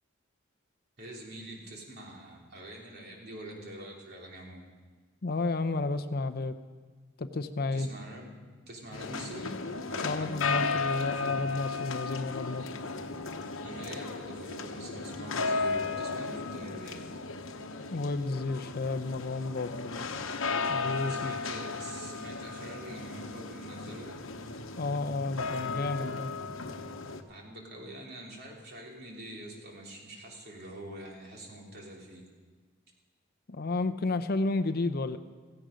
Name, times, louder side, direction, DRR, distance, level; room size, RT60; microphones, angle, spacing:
voice 1, 1.0-4.6 7.7-9.5 9.9-10.4 13.6-17.2 21.1-24.2 27.3-32.2, right 1 dB, 55° right, -1 dB, 3.3 m, -45 dB
voice 2, 5.2-6.6 7.2-7.9 10.0-12.7 17.9-20.1 20.7-21.3 24.8-26.3 33.5-35.2, left 3 dB, 50° left, 9 dB, 0.7 m, -32 dB
sound 1, 8.9-27.2, left 4 dB, 85° left, 1.1 m, -35 dB
16.5 x 15.5 x 5.1 m, 1.4 s
head